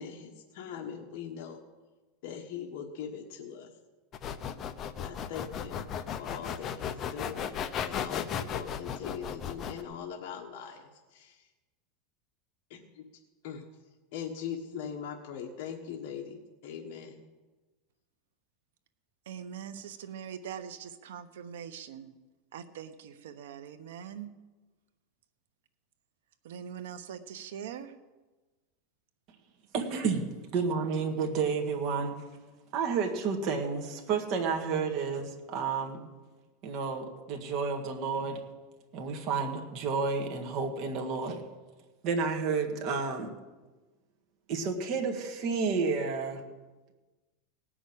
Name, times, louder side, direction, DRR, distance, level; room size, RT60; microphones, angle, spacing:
voice 1, 0.0-1.6 2.2-3.7 5.0-5.9 6.2-11.5 12.7-13.0 13.4-13.7 14.1-17.2, left 7 dB, 60° left, 0 dB, 1.4 m, -41 dB
sound 1, 4.1-9.8, left 8 dB, 30° left, 0.7 m, -35 dB
voice 2, 19.2-22.1 22.5-24.3 26.4-28.0, right 8 dB, 90° right, 10 dB, 1.1 m, -42 dB
voice 3, 29.7-32.2 32.7-36.1 36.6-38.4 38.9-41.4 42.0-43.3 44.5-46.4, right 5 dB, 40° right, 2 dB, 1.7 m, -31 dB
17.5 x 6.2 x 8.6 m, 1.2 s
supercardioid pair, 155°, 0 cm